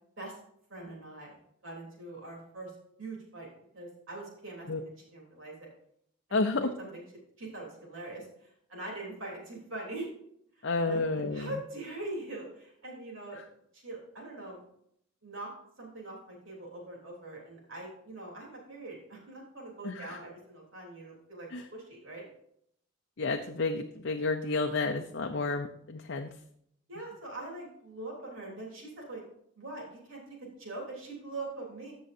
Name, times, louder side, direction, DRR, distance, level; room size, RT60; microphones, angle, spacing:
voice 1, 0.7-2.7 3.0-3.5 3.7-5.7 6.3-6.4 6.8-7.0 7.4-10.1 10.6-13.4 13.7-14.6 15.2-15.5 15.8-22.2 26.9-29.2 29.5-31.9, right 2 dB, 70° right, -2 dB, 3.5 m, -43 dB
voice 2, 6.3-6.7 10.6-11.6 13.3-13.5 19.8-20.2 21.5-21.7 23.2-26.3, left 3 dB, 60° left, 5 dB, 0.6 m, -31 dB
14.5 x 6.2 x 2.7 m, 0.70 s
head